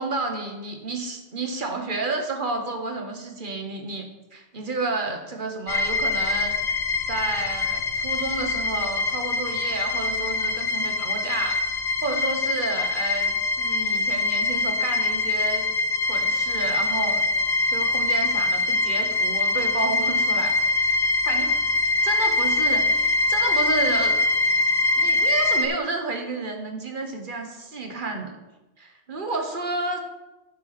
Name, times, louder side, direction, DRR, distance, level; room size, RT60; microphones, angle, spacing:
voice 1, 0.0-6.6 7.1-11.7 12.0-15.7 16.1-17.2 17.7-20.6 21.2-21.5 22.0-24.2 24.9-28.4 28.8-30.0, right 3 dB, 50° right, 4 dB, 1.4 m, -30 dB
sound 1, 5.7-25.7, left 3 dB, 50° left, 0.7 m, -23 dB
10.5 x 7.2 x 4.2 m, 1.1 s
omnidirectional pair, 1.1 m